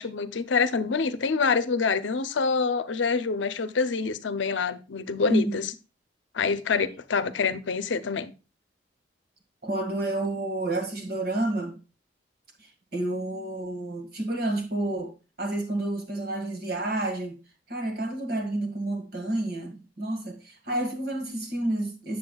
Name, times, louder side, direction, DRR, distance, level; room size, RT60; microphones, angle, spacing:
voice 1, 0.0-5.7 6.3-8.3, left 5 dB, 80° left, 0.6 m, -26 dB
voice 2, 5.3-5.6 9.6-11.7 12.9-15.1 15.4-17.4 17.7-22.2, right 1 dB, 55° right, 1.8 m, -29 dB
7.9 x 7.3 x 2.3 m
head